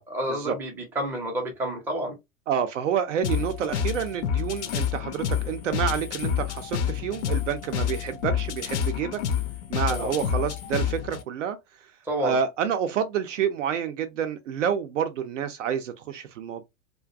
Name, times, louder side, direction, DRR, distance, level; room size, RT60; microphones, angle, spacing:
voice 1, 0.1-2.1 9.9-10.2 12.1-12.4, right 1 dB, 5° right, 0.5 m, -29 dB
voice 2, 2.5-9.2 9.7-11.6 12.2-16.6, right 8 dB, 60° right, 0.5 m, -28 dB
sound 1, 3.2-11.2, left 8 dB, 55° left, 0.5 m, -28 dB
2.4 x 2.1 x 2.4 m
figure-of-eight pair, 95°, 43 cm